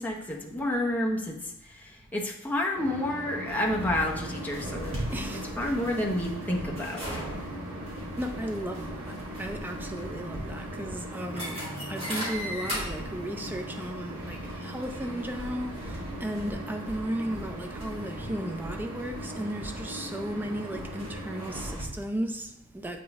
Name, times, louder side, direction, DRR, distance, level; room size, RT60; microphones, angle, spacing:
voice 1, 0.0-5.0 5.6-7.2, left 1 dB, 5° left, 0.8 m, -30 dB
sound 1, 2.7-21.7, equal, 90° right, 1.9 m, -39 dB
sound 2, 3.5-21.8, equal, 25° right, 2.5 m, -40 dB
voice 2, 5.1-5.5 8.2-23.0, right 1 dB, 10° right, 0.4 m, -35 dB
7.8 x 5.2 x 3.5 m
head